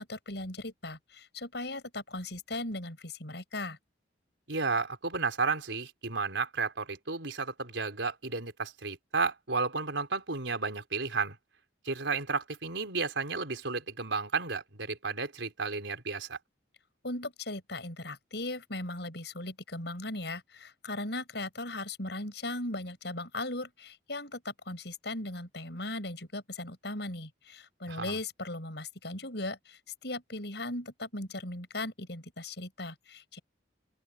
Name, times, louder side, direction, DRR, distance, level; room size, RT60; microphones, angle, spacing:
voice 1, 0.0-3.8 17.0-33.4, left 2 dB, 65° left, 7.9 m, -38 dB
voice 2, 4.5-11.4 11.8-16.4 27.9-28.2, right 4 dB, 85° right, 4.3 m, -32 dB
open air
head